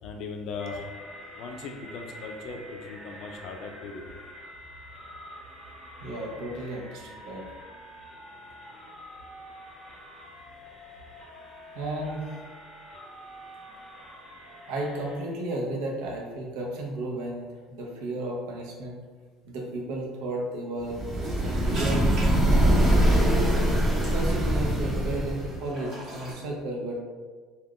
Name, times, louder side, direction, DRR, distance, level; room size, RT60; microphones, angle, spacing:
voice 1, 0.0-0.9 1.3-4.2, left 4 dB, 55° left, 3 dB, 0.3 m, -38 dB
sound 1, 0.6-15.2, equal, 15° left, 0.8 m, -46 dB
voice 2, 5.4-7.5 11.7-12.2 13.7-13.8 14.7-19.0 19.4-21.0 21.4-22.1 23.0-23.8 24.1-27.0, right 2 dB, 75° right, -1 dB, 0.7 m, -33 dB
sound 2, 20.9-25.6, right 1 dB, 15° right, 0.5 m, -23 dB
sound 3, 21.1-26.3, right 2 dB, 40° right, 0.9 m, -40 dB
2.3 x 2.3 x 3.5 m, 1.4 s
cardioid pair, 140°, 0 cm